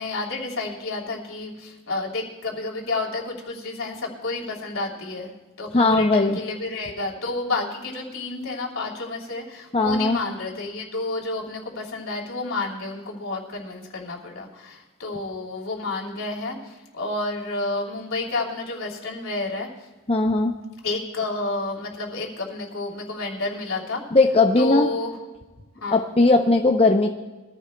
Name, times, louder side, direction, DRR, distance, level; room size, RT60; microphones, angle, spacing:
voice 1, 0.0-5.3 5.6-19.7 20.8-24.0 24.6-25.2 25.8-26.0, left 2 dB, 80° left, -1 dB, 3.0 m, -30 dB
voice 2, 5.7-6.4 9.7-10.2 20.1-20.5 24.1-24.9 25.9-27.1, left 2 dB, 30° left, 4 dB, 0.6 m, -18 dB
23.5 x 15.0 x 2.2 m, 1.2 s
head